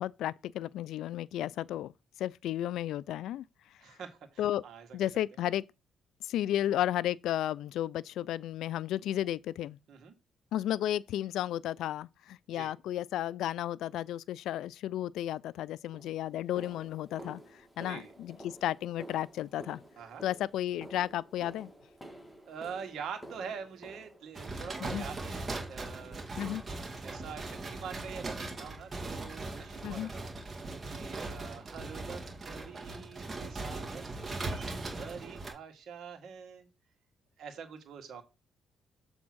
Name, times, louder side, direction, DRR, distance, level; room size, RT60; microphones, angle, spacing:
voice 1, 0.0-1.9 2.2-3.4 4.4-4.6 4.9-5.6 6.2-9.8 10.5-19.8 20.2-21.7 24.8-25.0 26.4-26.6 29.8-30.1, left 12 dB, 80° left, 0.3 m, -33 dB
voice 2, 3.8-5.1 9.9-10.1 12.5-12.7 17.9-18.1 20.0-20.2 22.5-26.2 27.0-30.3 30.9-36.7 37.4-38.2, right 6 dB, 70° right, 1.9 m, -45 dB
sound 1, 15.2-15.4 15.9-25.1 25.6-26.0 26.2-26.5 26.8-27.0 27.5-27.6 28.1-28.2, right 1 dB, 5° left, 2.0 m, -51 dB
sound 2, 24.3-35.5, right 2 dB, 30° right, 2.1 m, -39 dB
7.3 x 3.5 x 6.1 m
cardioid pair, 90°, 0 cm